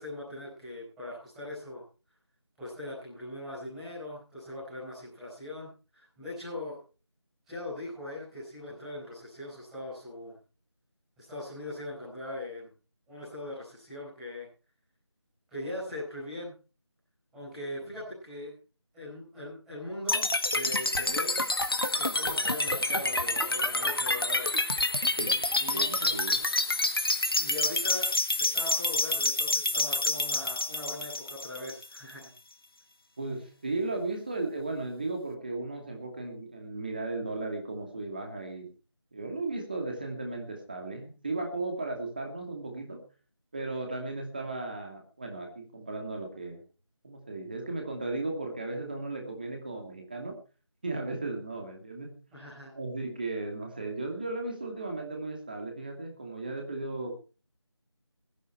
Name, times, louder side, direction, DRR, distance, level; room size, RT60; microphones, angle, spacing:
voice 1, 0.0-1.8 2.6-6.8 7.5-10.4 11.2-12.7 13.1-14.5 15.5-16.5 17.3-18.5 18.9-21.4 21.9-24.6 25.6-25.9 27.4-28.1 28.4-32.3 52.3-52.7, left 1 dB, ahead, -12 dB, 5.5 m, -40 dB
sound 1, 20.1-32.1, left 2 dB, 55° left, 1.6 m, -28 dB
voice 2, 25.7-26.4 33.2-38.7 39.1-43.0 43.5-46.6 47.0-50.4 50.8-52.2 52.7-57.2, right 2 dB, 20° right, 2 dB, 2.6 m, -35 dB
20.5 x 10.0 x 4.6 m, 0.35 s
figure-of-eight pair, 175°, 15 cm